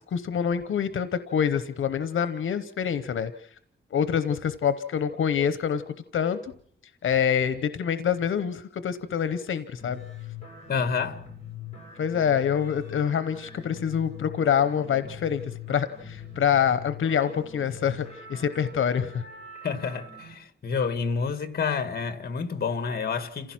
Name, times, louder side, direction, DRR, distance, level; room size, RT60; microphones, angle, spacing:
voice 1, 0.1-3.5 3.9-5.8 6.1-6.5 7.0-10.0 12.0-19.2, left 8 dB, 85° left, 0.9 m, -26 dB
sound 1, 9.8-20.3, left 6 dB, 35° left, 7.6 m, -43 dB
voice 2, 10.7-11.2 19.6-23.5, left 5 dB, 50° left, 1.6 m, -29 dB
28.5 x 16.0 x 6.0 m
wide cardioid pair, 165°, 20 cm